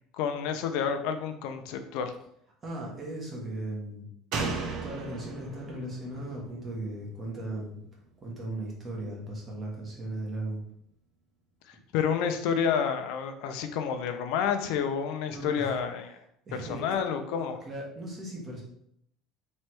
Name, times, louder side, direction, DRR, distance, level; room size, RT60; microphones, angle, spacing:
voice 1, 0.2-2.1 11.9-16.0 16.6-17.6, left 7 dB, 60° left, 7 dB, 0.5 m, -29 dB
voice 2, 2.6-4.1 4.4-7.8 8.2-10.6 15.3-15.7 16.5-17.0 17.7-18.6, right 1 dB, 20° right, -2 dB, 1.1 m, -37 dB
Slam, 4.3-7.8 8.1-8.2, right 3 dB, 50° right, 0.8 m, -36 dB
3.2 x 3.1 x 4.5 m, 0.72 s
cardioid pair, 175°, 0 cm